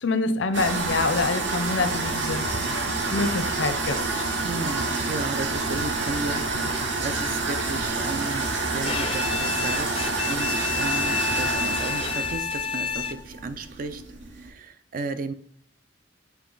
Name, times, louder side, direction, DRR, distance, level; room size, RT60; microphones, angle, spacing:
voice 1, 0.0-2.4 3.1-4.3, left 3 dB, 75° left, 11 dB, 0.6 m, -26 dB
sound 1, 0.5-14.5, right 3 dB, 70° right, 0.8 m, -28 dB
voice 2, 4.4-14.0 14.3-15.3, right 3 dB, 45° right, 10 dB, 0.4 m, -34 dB
Bowed string instrument, 8.8-13.4, left 6 dB, 30° left, 0.3 m, -29 dB
8.0 x 3.2 x 3.9 m, 0.64 s
head